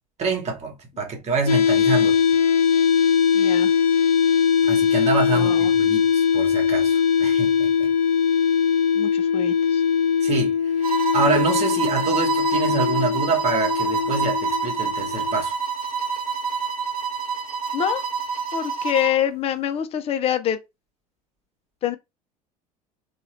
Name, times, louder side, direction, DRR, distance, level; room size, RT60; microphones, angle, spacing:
voice 1, 0.2-2.1 4.6-7.9 10.2-15.5, right 4 dB, 35° right, 1.3 m, -26 dB
sound 1, 1.5-15.4, left 7 dB, 80° left, 0.6 m, -21 dB
voice 2, 3.3-3.7 5.3-5.7 8.9-9.8 17.7-18.0 18.5-20.6 21.8-22.0, left 10 dB, 30° left, 0.6 m, -25 dB
sound 2, 10.8-19.2, right 5 dB, 80° right, 0.5 m, -27 dB
3.6 x 2.4 x 3.1 m
figure-of-eight pair, 70°, 19 cm